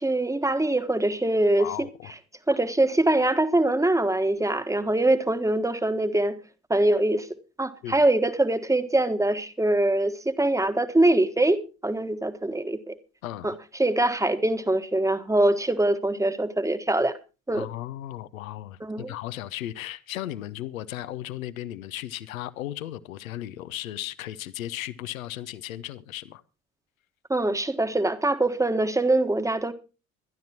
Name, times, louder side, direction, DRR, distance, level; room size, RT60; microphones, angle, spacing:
voice 1, 0.0-1.9 2.5-6.4 6.7-7.3 7.6-12.9 13.4-13.5 13.8-17.2 17.5-17.7 18.8-19.1 27.3-29.7, right 1 dB, 5° right, 1.3 m, -23 dB
voice 2, 1.6-2.1 2.5-2.6 7.8-8.0 13.2-13.6 17.5-26.4, left 13 dB, 70° left, 0.9 m, -36 dB
22.5 x 12.0 x 2.9 m
figure-of-eight pair, 60°, 42 cm